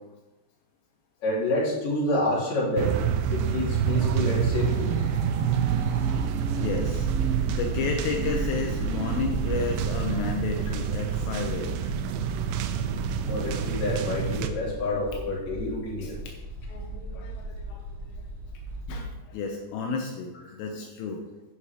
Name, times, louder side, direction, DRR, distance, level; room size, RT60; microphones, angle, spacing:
voice 1, 1.2-3.0 3.3-4.9 13.2-16.2, left 2 dB, 40° left, -6 dB, 4.1 m, -28 dB
sound 1, 2.8-14.5, right 8 dB, 80° right, 2.6 m, -27 dB
sound 2, 3.2-9.3, right 3 dB, 60° right, 2.6 m, -38 dB
voice 2, 6.5-7.1 7.5-12.1 13.2-13.3 14.6-15.1 16.0-16.4 16.7-18.2 18.9-21.2, left 4 dB, 80° left, 1 dB, 3.5 m, -32 dB
sound 3, 6.8-18.8, right 1 dB, 25° right, 2.1 m, -39 dB
10.5 x 8.5 x 5.1 m, 1.0 s
omnidirectional pair, 5.8 m